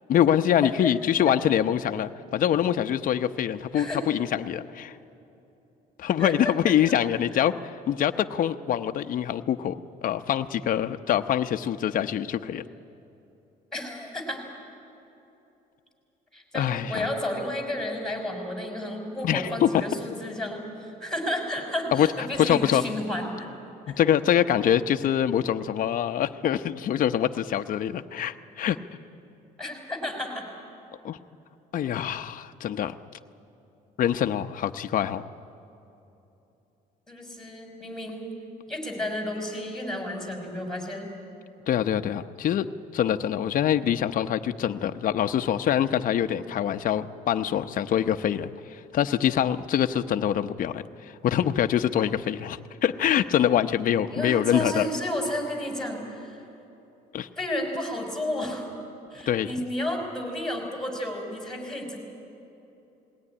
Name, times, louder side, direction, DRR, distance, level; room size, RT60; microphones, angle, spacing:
voice 1, 0.1-5.0 6.0-12.6 16.5-17.1 19.2-19.7 21.9-22.1 22.4-22.8 24.0-28.8 31.0-31.2 31.7-32.9 34.0-35.2 41.7-42.7 42.9-54.9 57.1-57.3 59.3-59.5, left 10 dB, 55° left, 8 dB, 0.8 m, -25 dB
voice 2, 3.7-4.0 6.2-6.5 13.7-14.4 16.3-23.5 29.6-30.4 37.1-38.3 38.7-41.1 54.1-56.4 57.4-58.7 59.1-62.0, left 1 dB, 5° left, 2 dB, 5.6 m, -32 dB
20.5 x 18.0 x 9.8 m, 2.9 s
cardioid pair, 110°, 17 cm